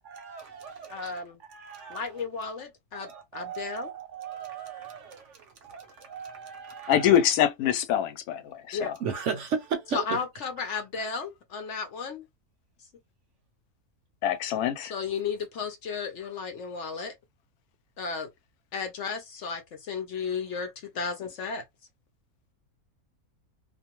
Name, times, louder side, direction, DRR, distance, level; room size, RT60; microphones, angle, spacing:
voice 1, 0.0-1.2 1.5-2.0 2.9-5.2 5.6-7.2 9.0-10.0, right 6 dB, 65° right, 0.8 m, -36 dB
voice 2, 0.9-1.4 1.9-3.9 8.7-8.9 9.9-12.2 14.8-17.1 18.0-18.3 18.7-21.6, left 5 dB, 65° left, 0.8 m, -34 dB
voice 3, 6.9-8.4 8.7-8.9 14.2-14.9, left 10 dB, 80° left, 1.1 m, -24 dB
2.5 x 2.2 x 2.9 m
omnidirectional pair, 1.6 m